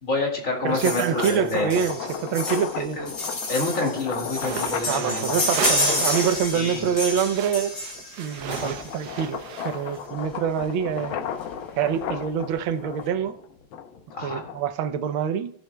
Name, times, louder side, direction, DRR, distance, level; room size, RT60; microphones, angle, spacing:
voice 1, 0.0-2.3 2.8-3.1 3.5-5.5 6.5-6.9 8.5-8.7 14.1-14.4, left 2 dB, 40° left, 2.4 m, -28 dB
sound 1, 0.6-7.1 7.7-14.8, left 8 dB, 85° left, 1.7 m, -35 dB
voice 2, 0.6-3.0 4.9-7.7 8.2-11.2 11.8-13.4 14.2-15.5, right 8 dB, 85° right, 1.5 m, -26 dB
sound 2, 0.8-9.1 10.2-10.3 10.6-10.7 10.9-11.1 11.4-12.0 12.5-12.6, left 2 dB, 60° left, 3.2 m, -29 dB
sound 3, 4.3-6.6 6.8-10.0, right 8 dB, 65° right, 1.2 m, -33 dB
16.5 x 7.3 x 2.2 m
omnidirectional pair, 2.2 m